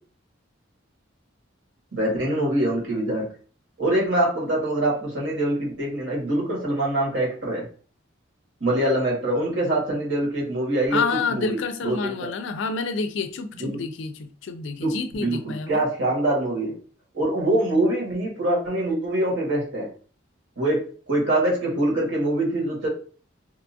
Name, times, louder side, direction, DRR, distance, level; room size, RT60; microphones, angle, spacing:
voice 1, 1.9-3.3 3.8-7.7 8.6-11.0 11.3-11.6 11.8-12.3 13.6-13.8 14.8-16.7 17.1-19.9 20.6-22.9, right 1 dB, 65° right, 1.4 m, -24 dB
voice 2, 10.9-15.8, left 4 dB, 65° left, 0.4 m, -28 dB
2.8 x 2.3 x 2.6 m
head